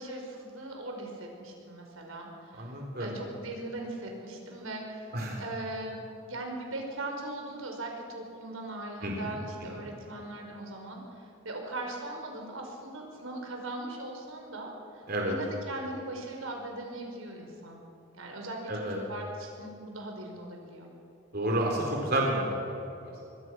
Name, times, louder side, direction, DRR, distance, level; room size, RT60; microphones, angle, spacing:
voice 1, 0.0-2.7 3.0-6.0 6.3-17.8 18.2-20.9, right 2 dB, 85° right, 1 dB, 5.4 m, -40 dB
voice 2, 2.6-3.2 5.1-5.4 9.0-9.3 15.1-15.3 18.7-19.0 21.3-23.3, right 1 dB, 45° right, -1 dB, 3.9 m, -30 dB
24.0 x 24.0 x 6.2 m, 2.8 s
head